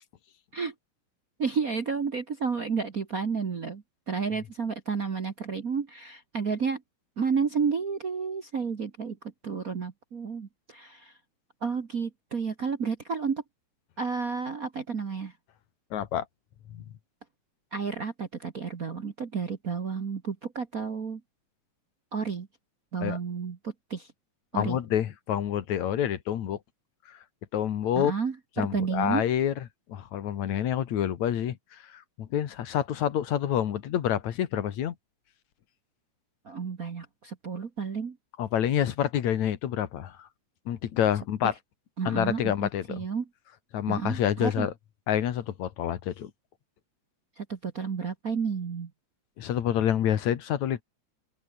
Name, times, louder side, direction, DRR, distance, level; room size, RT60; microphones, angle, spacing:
voice 1, 1.4-6.8 7.2-9.2 9.4-11.1 11.6-13.4 14.0-15.3 17.7-21.2 22.1-22.5 22.9-24.1 24.5-24.8 28.0-29.2 36.4-38.2 41.4-41.5 42.0-43.2 43.9-44.7 47.4-48.9, right 5 dB, 40° right, 1.3 m, -31 dB
voice 2, 15.9-16.3 16.7-16.8 23.0-23.2 24.5-26.6 27.1-27.2 27.5-28.1 28.6-29.5 29.9-34.9 38.4-40.3 40.7-41.5 42.1-43.0 43.7-44.7 45.1-46.3 49.4-50.8, left 10 dB, 75° left, 2.8 m, -28 dB
open air
omnidirectional pair, 3.4 m